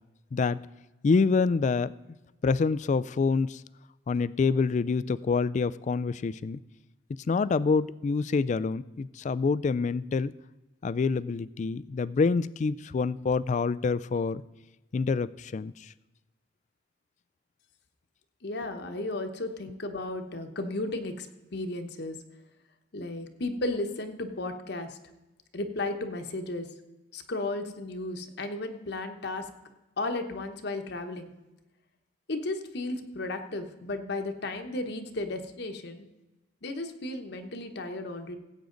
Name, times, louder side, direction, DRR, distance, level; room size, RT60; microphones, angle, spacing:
voice 1, 0.3-0.7 1.0-1.9 2.4-3.6 4.1-6.6 7.3-10.3 10.8-14.4 14.9-15.9, left 4 dB, 40° left, 19 dB, 0.3 m, -26 dB
voice 2, 18.4-21.3 21.5-22.2 22.9-25.0 25.5-26.7 27.1-29.5 30.0-31.3 32.3-36.1 36.6-38.4, left 2 dB, 60° left, 6 dB, 1.1 m, -34 dB
17.0 x 8.3 x 3.9 m, 1.1 s
head